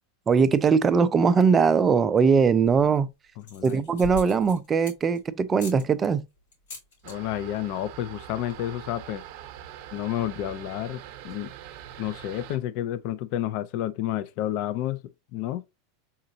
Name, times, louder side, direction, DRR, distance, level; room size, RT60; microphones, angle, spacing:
voice 1, 0.3-3.1 3.6-6.3, right 5 dB, 20° right, 0.4 m, -21 dB
sound 1, 2.4-2.9 3.4-5.2 5.6-5.8 6.5-7.2 7.4-7.8 8.0-8.1 8.3-8.7, equal, 85° left, 2.8 m, -41 dB
voice 2, 3.5-3.8 7.0-9.2 9.9-11.5 12.0-15.0 15.3-15.6, left 12 dB, 50° left, 0.4 m, -30 dB
sound 2, 7.0-12.6, right 11 dB, 55° right, 0.8 m, -43 dB
4.2 x 3.7 x 2.6 m
supercardioid pair, 140°, 0 cm